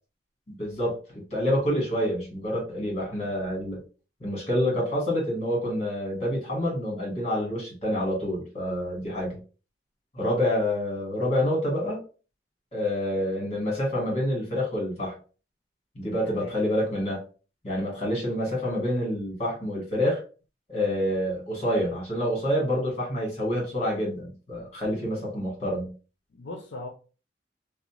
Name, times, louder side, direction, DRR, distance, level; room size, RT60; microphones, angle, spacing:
voice 1, 0.5-3.8 4.2-9.4 10.1-12.0 12.7-15.1 15.9-17.2 17.6-20.2 20.7-25.9, left 1 dB, 40° left, 1.4 m, -27 dB
voice 2, 16.2-16.6 26.3-26.9, left 2 dB, 80° left, 0.5 m, -39 dB
2.5 x 2.0 x 2.9 m
head